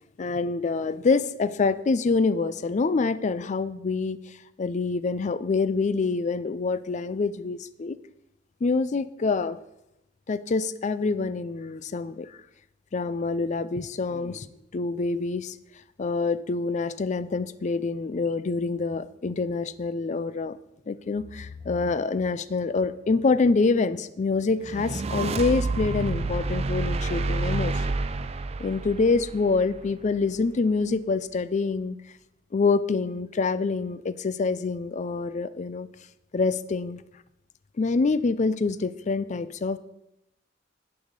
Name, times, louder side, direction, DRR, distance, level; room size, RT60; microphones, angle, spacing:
voice 1, 0.2-4.2 4.6-8.0 8.6-9.6 10.3-12.3 12.9-14.5 14.7-15.5 16.0-20.6 20.9-27.8 28.6-32.0 32.5-35.9 36.3-37.0 37.8-39.8, left 4 dB, 40° left, 15 dB, 0.4 m, -26 dB
sound 1, 24.6-30.0, right 3 dB, 35° right, 0.4 m, -29 dB
10.5 x 4.9 x 5.2 m, 0.85 s
head